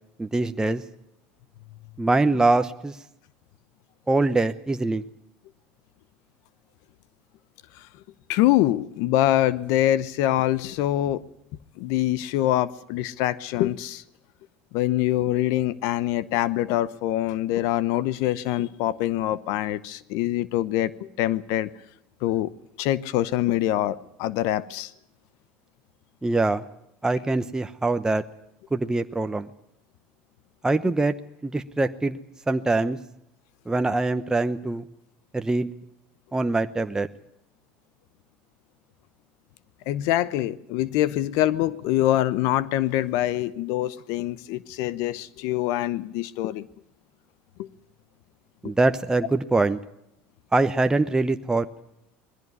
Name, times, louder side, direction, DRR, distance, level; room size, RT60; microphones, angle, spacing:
voice 1, 0.2-0.8 2.0-3.0 4.1-5.0 26.2-26.6 27.0-28.2 28.7-29.5 30.6-31.1 31.4-32.2 32.5-33.0 33.7-34.8 35.3-35.7 36.3-37.1 48.6-49.8 50.5-51.7, right 2 dB, 10° right, 0.9 m, -23 dB
voice 2, 8.3-11.2 11.8-14.0 14.7-21.7 22.2-22.5 22.8-24.9 39.9-46.6 47.6-47.7 48.6-48.7, left 14 dB, 70° left, 0.9 m, -24 dB
21.0 x 15.5 x 9.6 m
supercardioid pair, 90°, 6 cm